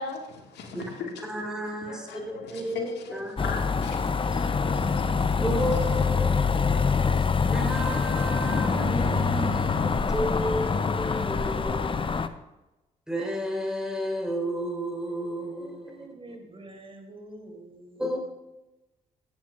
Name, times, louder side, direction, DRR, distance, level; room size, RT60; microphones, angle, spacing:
voice 1, 0.0-1.2 1.6-5.4, left 4 dB, 75° left, 2.0 m, -39 dB
voice 2, 1.3-2.1 2.5-3.6 4.2-4.9 5.4-12.3 13.1-16.4 18.0-18.2, equal, 5° right, 3.8 m, -33 dB
sound 1, 3.4-12.3, left 5 dB, 30° left, 0.7 m, -25 dB
voice 3, 11.3-11.9 15.5-18.0, right 2 dB, 30° right, 3.7 m, -47 dB
15.0 x 8.7 x 2.5 m
hypercardioid pair, 50°, 17 cm